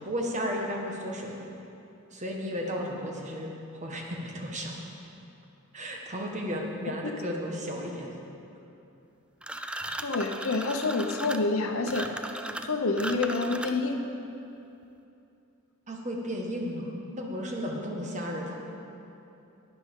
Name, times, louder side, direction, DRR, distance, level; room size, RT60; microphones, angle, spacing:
voice 1, 0.0-1.4 2.1-3.5 3.8-4.7 5.7-8.1 15.9-18.6, equal, 35° right, 0 dB, 1.5 m, -34 dB
sound 1, 9.4-14.0, right 1 dB, 5° right, 0.3 m, -37 dB
voice 2, 10.0-12.1 12.6-14.0, left 3 dB, 65° left, 4 dB, 0.9 m, -28 dB
11.5 x 9.6 x 5.4 m, 2.8 s
head